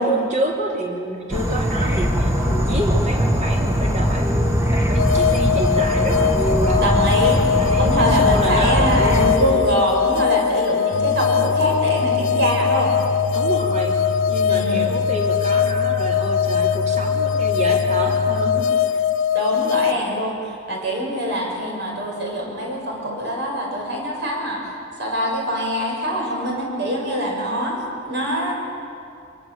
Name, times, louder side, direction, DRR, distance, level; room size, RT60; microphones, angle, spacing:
voice 1, 0.0-7.0 7.5-9.7 13.3-14.0 14.3-19.0, right 1 dB, 35° right, 0 dB, 3.5 m, -28 dB
Insect / Frog, 1.3-9.4, equal, 15° right, 2.0 m, -20 dB
sound 1, 5.0-19.9, left 8 dB, 75° left, 0.6 m, -21 dB
voice 2, 6.8-7.4 7.8-12.9 14.5-14.9 19.3-24.7 25.0-28.5, equal, 60° right, -1 dB, 6.8 m, -24 dB
sound 2, 10.9-18.6, left 1 dB, 60° left, 1.2 m, -29 dB
26.5 x 23.5 x 8.1 m, 2.6 s
head